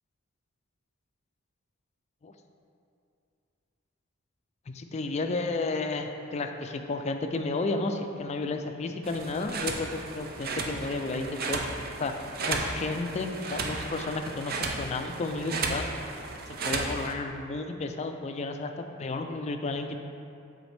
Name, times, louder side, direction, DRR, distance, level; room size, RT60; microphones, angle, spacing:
voice 1, 4.7-11.6 12.0-12.1 12.5-15.8 16.5-20.0, left 3 dB, 30° left, 6 dB, 0.3 m, -32 dB
sound 1, 9.0-17.1, right 3 dB, 45° right, 0.5 m, -34 dB
7.7 x 4.0 x 3.3 m, 2.6 s
head